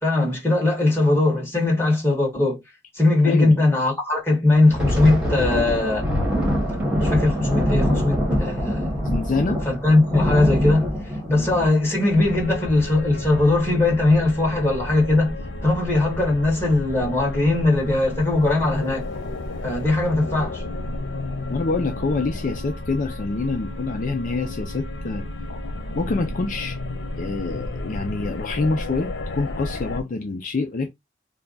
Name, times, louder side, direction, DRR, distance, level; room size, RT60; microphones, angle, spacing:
voice 1, 0.0-2.6 2.9-6.1 7.0-8.9 9.6-10.9 11.3-15.3 15.6-19.1 19.6-20.6, left 2 dB, 15° left, 1.7 m, -20 dB
Thunder, 4.5-13.6 13.9-14.1 14.5-14.8 15.4-15.9, equal, 5° right, 1.4 m, -24 dB
voice 2, 9.0-9.6 11.3-11.5 21.5-25.2 25.9-26.8 27.2-30.9, left 3 dB, 45° left, 0.4 m, -26 dB
sound 1, 12.1-30.0, left 2 dB, 90° left, 0.7 m, -32 dB
3.4 x 2.2 x 3.9 m
head